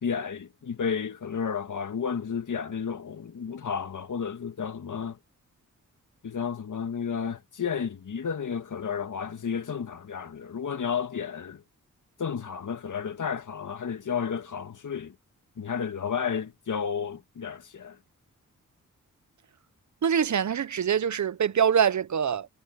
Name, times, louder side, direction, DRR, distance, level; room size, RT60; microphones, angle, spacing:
voice 1, 0.0-5.2 6.2-11.6 12.2-15.2 15.6-18.0, left 6 dB, 70° left, 1.8 m, -32 dB
voice 2, 20.0-22.5, right 8 dB, 60° right, 0.8 m, -24 dB
cardioid pair, 70°, 32 cm